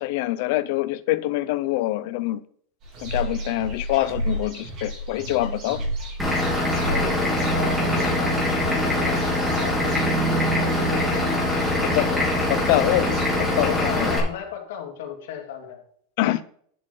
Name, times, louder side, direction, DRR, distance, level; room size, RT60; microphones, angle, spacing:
voice 1, 0.0-2.4 3.0-5.8 11.9-13.2 13.5-14.1 16.2-16.4, left 16 dB, 50° left, 13 dB, 0.6 m, -25 dB
sound 1, 2.8-13.3, right 1 dB, 30° right, 2.7 m, -34 dB
Vehicle / Engine, 6.2-14.2, left 1 dB, 5° right, 2.7 m, -23 dB
voice 2, 6.9-10.0 10.7-11.3 12.1-12.3 12.9-13.0 13.7-15.8, left 8 dB, 75° left, -1 dB, 3.1 m, -35 dB
11.0 x 7.5 x 4.0 m, 0.62 s
supercardioid pair, 175°, 0 cm